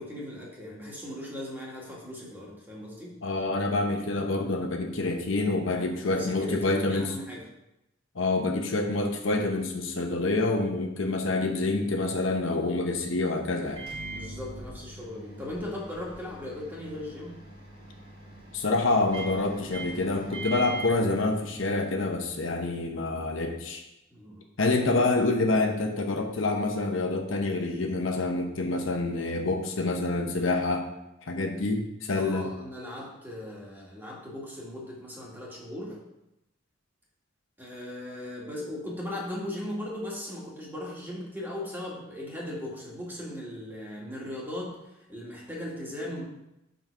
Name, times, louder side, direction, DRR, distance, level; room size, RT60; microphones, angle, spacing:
voice 1, 0.0-3.1 5.8-7.4 14.1-17.4 24.1-24.4 32.1-36.0 37.6-46.2, left 1 dB, 10° right, -4 dB, 1.9 m, -38 dB
voice 2, 3.2-7.1 8.1-13.8 18.5-23.8 24.6-30.9 31.2-32.5, left 2 dB, 75° left, 3 dB, 1.0 m, -27 dB
Microwave oven, 13.7-21.9, right 2 dB, 35° right, 2.3 m, -42 dB
5.7 x 5.3 x 6.1 m, 0.89 s
head